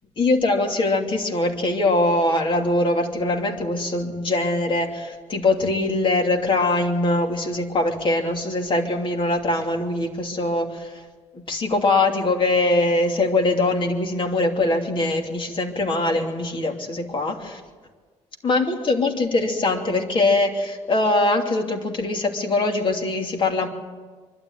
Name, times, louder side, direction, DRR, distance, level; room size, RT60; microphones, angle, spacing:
voice 1, 0.2-11.0 11.3-17.6 18.4-23.7, left 2 dB, 40° left, 3 dB, 2.9 m, -22 dB
24.5 x 12.5 x 9.5 m, 1.5 s
cardioid pair, 110°, 13 cm